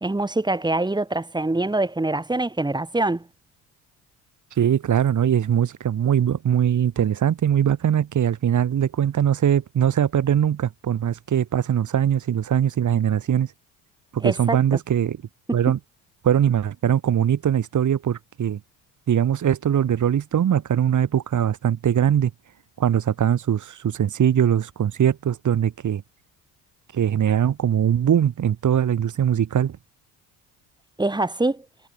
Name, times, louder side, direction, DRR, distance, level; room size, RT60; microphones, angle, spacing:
voice 1, 0.0-3.3 14.2-14.6 15.5-15.6 31.0-31.6, right 2 dB, 10° right, 2.0 m, -24 dB
voice 2, 4.6-13.5 14.1-15.2 15.5-15.8 16.2-18.6 19.1-22.3 22.8-26.0 26.9-29.8, right 9 dB, 50° right, 3.1 m, -21 dB
hypercardioid pair, 65°, 40 cm